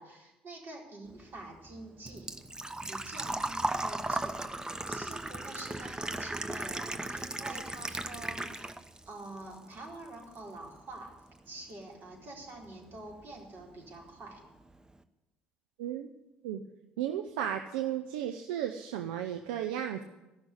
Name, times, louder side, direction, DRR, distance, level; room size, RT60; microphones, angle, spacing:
voice 1, 0.0-2.3 2.9-4.4 4.9-8.7 9.1-11.1 11.5-14.4, right 2 dB, 50° right, -1 dB, 4.2 m, -46 dB
Engine / Trickle dribble / Fill (with liquid), 1.1-9.0 9.4-10.4 10.6-10.7 12.7-12.8 12.9-13.3 13.6-13.7 14.0-14.1, right 2 dB, 15° right, 1.0 m, -36 dB
voice 2, 15.8-16.1 16.4-16.6 17.0-20.0, right 10 dB, 80° right, 7 dB, 0.6 m, -34 dB
14.5 x 6.2 x 9.7 m, 1.0 s
hypercardioid pair, 55°, 5 cm